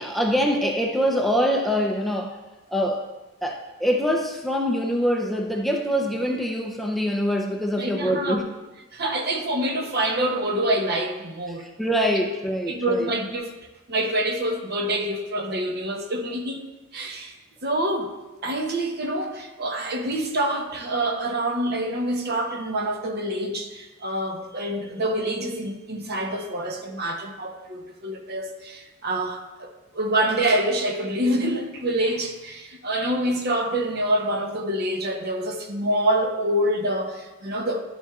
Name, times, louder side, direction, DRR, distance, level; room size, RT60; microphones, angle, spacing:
voice 1, 0.0-2.4 2.7-3.0 3.4-8.4 11.8-13.1, equal, ahead, 1 dB, 0.5 m, -24 dB
voice 2, 7.8-8.4 8.9-11.7 12.2-12.4 12.7-13.5 13.9-16.7 16.9-17.3 17.6-37.8, right 1 dB, 50° right, 4 dB, 0.8 m, -26 dB
11.0 x 7.2 x 2.4 m, 1.1 s
head